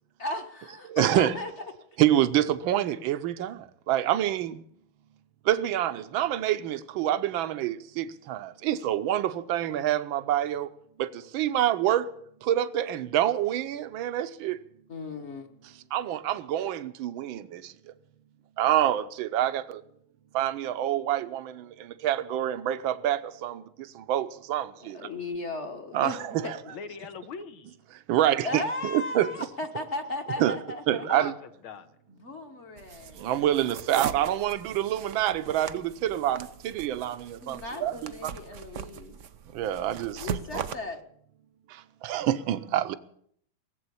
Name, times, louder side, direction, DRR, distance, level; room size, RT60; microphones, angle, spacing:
voice 1, 0.2-1.5 14.9-15.6 24.8-26.2 26.4-26.5 28.4-31.3 32.1-33.6 37.4-39.2 40.2-41.0, left 2 dB, 35° left, 1.4 m, -36 dB
voice 2, 0.9-1.3 2.0-4.6 5.4-10.7 11.0-12.1 12.4-14.6 15.6-17.7 18.6-19.8 20.3-25.1 25.9-26.6 28.1-29.3 30.4-30.6 30.9-31.3 33.2-38.3 39.5-40.6 41.7-43.0, right 12 dB, 70° right, 1.5 m, -27 dB
voice 3, 26.7-27.8 31.0-31.9, left 6 dB, 75° left, 2.0 m, -41 dB
sound 1, 32.8-40.7, right 8 dB, 85° right, 0.6 m, -39 dB
18.5 x 8.0 x 9.7 m
omnidirectional pair, 2.3 m